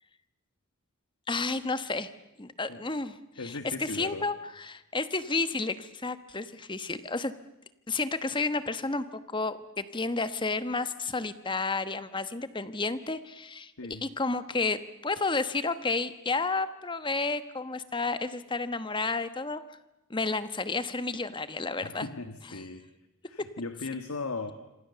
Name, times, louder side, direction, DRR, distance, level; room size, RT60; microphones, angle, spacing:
voice 1, 1.3-2.1 2.4-3.2 3.4-7.3 7.9-19.6 20.1-22.1 22.5-22.6, left 3 dB, 20° left, 12 dB, 1.1 m, -31 dB
voice 2, 3.3-4.3 13.8-14.1 21.8-22.8 23.2-24.5, left 3 dB, 80° left, 8 dB, 1.7 m, -37 dB
26.5 x 26.0 x 6.9 m, 0.94 s
head